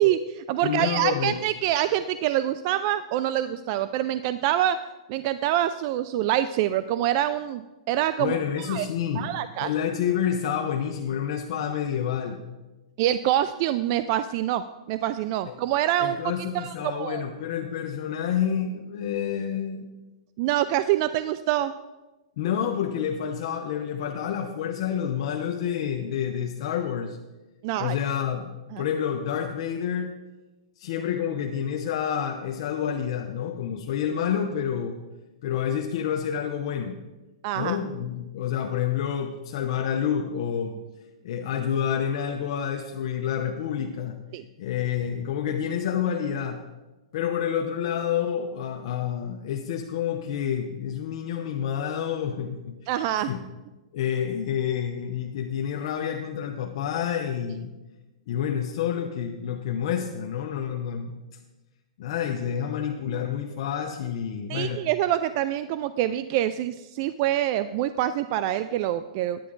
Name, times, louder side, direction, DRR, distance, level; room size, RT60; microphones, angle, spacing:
voice 1, 0.0-4.8 5.1-7.6 7.9-8.9 9.2-9.7 13.0-16.2 16.5-17.2 20.4-21.7 27.6-28.0 28.7-28.9 37.4-37.8 44.3-44.4 52.9-53.3 64.5-69.4, right 12 dB, 40° right, 13 dB, 0.3 m, -25 dB
voice 2, 0.6-1.4 8.2-9.3 9.6-12.4 15.5-15.6 16.0-19.9 22.4-27.2 27.8-30.1 30.8-35.0 35.4-37.0 37.5-40.8 41.2-44.2 44.6-46.6 47.1-52.8 53.2-53.4 53.9-57.7 58.3-61.1 62.0-64.8, left 8 dB, 55° left, 3 dB, 0.7 m, -28 dB
10.0 x 9.7 x 3.8 m, 1.1 s
hypercardioid pair, 150°, 3 cm